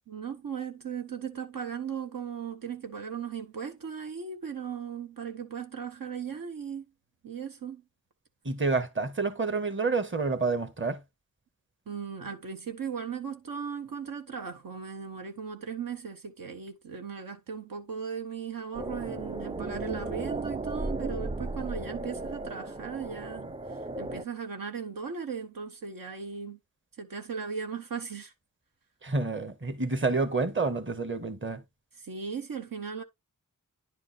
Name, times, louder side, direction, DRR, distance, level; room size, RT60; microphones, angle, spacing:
voice 1, 0.1-6.8 7.2-7.8 11.9-26.6 27.0-28.3 32.0-33.0, right 6 dB, 75° right, 1.2 m, -37 dB
voice 2, 8.4-11.0 29.0-31.6, right 3 dB, 35° right, 1.4 m, -28 dB
sound 1, 18.7-24.2, right 2 dB, 15° right, 0.5 m, -35 dB
10.5 x 5.1 x 3.3 m
wide cardioid pair, 80°, 34 cm